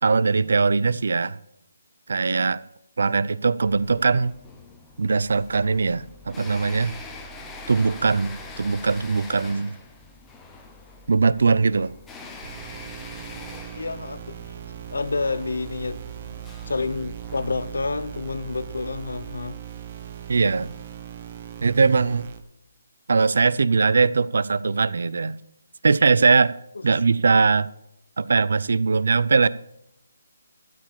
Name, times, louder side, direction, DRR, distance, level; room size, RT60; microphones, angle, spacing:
voice 1, 0.0-1.4 2.1-2.6 3.0-4.4 5.0-6.9 7.7-9.7 11.1-11.9 20.3-20.7 21.6-22.3 23.1-25.4 25.8-26.6 26.8-27.7 28.2-29.5, right 4 dB, 65° right, 0.6 m, -20 dB
sound 1, 3.6-19.3, left 2 dB, 5° left, 0.8 m, -44 dB
sound 2, 12.4-22.4, right 10 dB, 30° right, 1.0 m, -39 dB
voice 2, 13.7-14.4 14.9-16.0 16.6-19.6 26.8-26.9, left 3 dB, 85° left, 0.8 m, -29 dB
13.0 x 5.0 x 8.8 m
hypercardioid pair, 170°, 0 cm